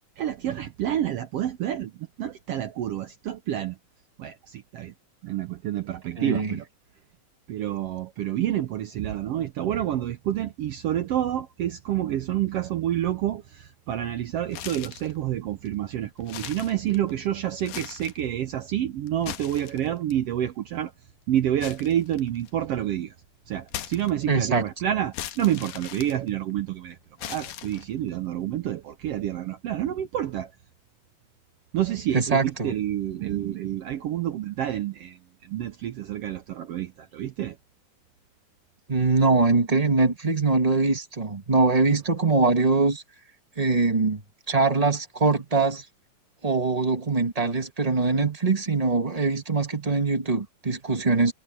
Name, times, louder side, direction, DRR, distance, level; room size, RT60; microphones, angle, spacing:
voice 1, 0.2-3.8 4.2-4.9 5.2-6.6 7.5-20.9 21.3-23.1 23.5-30.5 31.7-37.6, right 11 dB, 70° right, 1.5 m, -28 dB
voice 2, 6.2-6.6 24.3-24.7 32.1-32.7 38.9-43.0 43.6-44.2 44.5-45.8 46.4-51.3, right 3 dB, 40° right, 0.5 m, -23 dB
sound 1, 14.5-15.2 15.7-15.8 16.2-17.2 17.6-18.3 19.1-20.1 21.6-22.6 23.7-24.5 25.1-26.7 27.2-28.1, left 12 dB, 85° left, 2.6 m, -39 dB
omnidirectional pair, 3.5 m